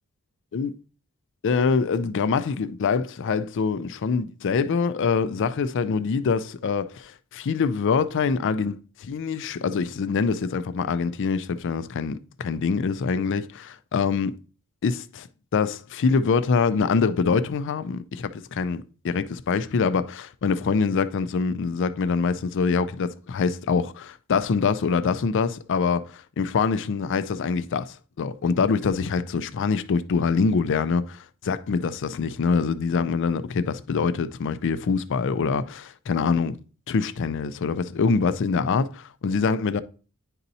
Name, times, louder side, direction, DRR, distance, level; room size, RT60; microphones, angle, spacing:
voice 1, 1.4-14.4 14.8-15.3 15.5-36.6 36.9-39.8, left 5 dB, 55° left, 0.4 m, -25 dB
9.9 x 4.1 x 2.7 m
head